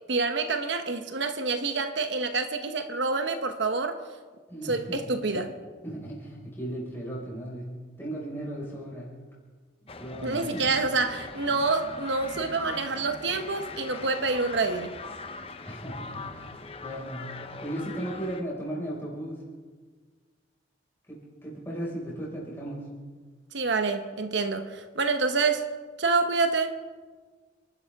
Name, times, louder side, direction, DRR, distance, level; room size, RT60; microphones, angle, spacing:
voice 1, 0.1-4.0 4.7-5.5 10.2-14.9 23.5-25.7 26.0-26.8, right 4 dB, 75° right, 8 dB, 1.0 m, -27 dB
voice 2, 4.5-5.4 5.8-9.1 10.0-10.6 15.7-17.2 17.6-19.4 21.1-22.9, right 1 dB, 15° left, -5 dB, 5.4 m, -36 dB
sound 1, 9.9-18.4, left 3 dB, 30° left, 0.8 m, -41 dB
30.0 x 12.0 x 3.6 m, 1.5 s
head